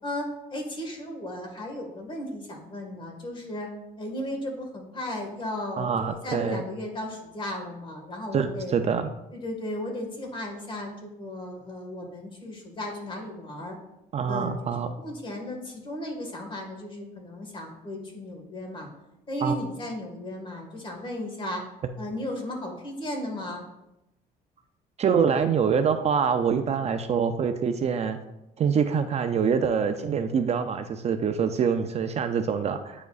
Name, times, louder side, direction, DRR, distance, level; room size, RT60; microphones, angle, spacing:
voice 1, 0.0-3.7 4.0-8.7 9.3-13.8 14.3-18.9 19.3-21.6 22.0-23.7, left 1 dB, 30° left, 2 dB, 1.7 m, -35 dB
voice 2, 5.8-6.6 8.3-9.1 14.1-14.9 19.4-19.6 25.0-28.2 28.6-33.1, right 6 dB, 40° right, 8 dB, 0.4 m, -25 dB
9.0 x 4.8 x 2.4 m, 0.91 s
cardioid pair, 110°, 17 cm